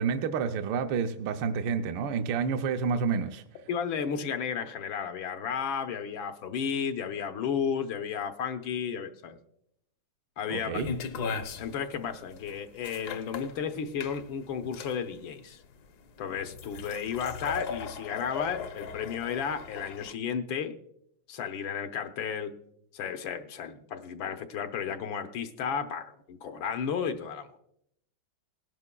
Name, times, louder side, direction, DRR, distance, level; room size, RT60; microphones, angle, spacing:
voice 1, 0.0-3.4 10.5-10.9, right 6 dB, 75° right, 1.3 m, -29 dB
voice 2, 3.7-9.4 10.4-10.8 11.2-15.6 16.2-20.7 21.3-22.5 22.9-27.6, left 7 dB, 80° left, 1.6 m, -33 dB
sound 1, 10.7-20.1, left 6 dB, 65° left, 1.1 m, -38 dB
19.5 x 11.0 x 2.2 m
omnidirectional pair, 2.2 m